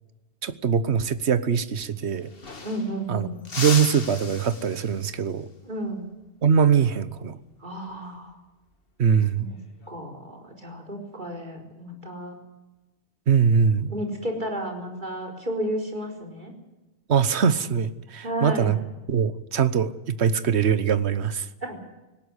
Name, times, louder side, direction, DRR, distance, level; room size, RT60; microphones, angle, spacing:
voice 1, 0.4-2.3 3.1-3.3 3.6-5.5 6.4-7.4 9.0-9.5 13.3-13.9 17.1-18.8 19.1-21.5, right 7 dB, 80° right, 14 dB, 1.3 m, -22 dB
sound 1, 1.8-1.9 2.1-3.1 3.5-5.2 7.7-8.0 9.4-9.9, left 4 dB, 60° left, 2.0 m, -35 dB
voice 2, 2.6-3.4 5.6-6.0 7.6-8.4 9.4-9.6 9.9-12.4 13.9-16.5 18.2-18.7 21.6-21.8, right 1 dB, 45° right, 2 dB, 4.6 m, -32 dB
19.0 x 17.5 x 9.7 m, 1.1 s
omnidirectional pair, 1.1 m